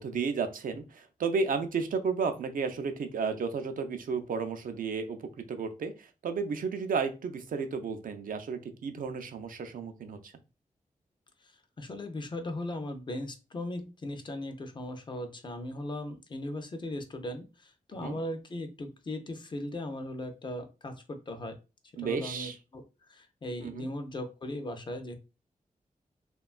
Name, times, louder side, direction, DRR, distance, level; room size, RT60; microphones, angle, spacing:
voice 1, 0.0-10.3 17.9-18.2 22.0-22.6 23.6-23.9, right 5 dB, 80° right, 7 dB, 0.4 m, -33 dB
voice 2, 11.8-21.6 22.0-22.8 23.1-25.2, left 1 dB, 35° left, 7 dB, 0.4 m, -38 dB
2.9 x 2.2 x 2.4 m, 0.30 s
wide cardioid pair, 170°, 14 cm